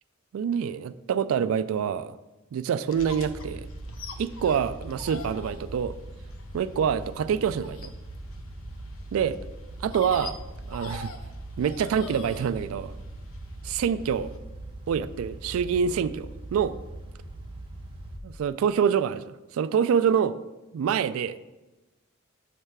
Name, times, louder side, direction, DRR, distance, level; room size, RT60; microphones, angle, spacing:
voice 1, 0.3-2.2 2.5-3.7 4.2-6.0 6.5-7.9 9.1-9.4 9.8-10.4 10.7-11.1 11.6-12.9 13.6-14.3 14.9-16.7 18.2-20.3 20.7-21.4, right 7 dB, 90° right, 14 dB, 0.3 m, -26 dB
sound 1, 2.9-14.4, left 4 dB, 80° left, 0.6 m, -45 dB
sound 2, 3.0-18.2, right 2 dB, 25° right, 1.0 m, -41 dB
6.4 x 3.3 x 6.0 m, 1.1 s
head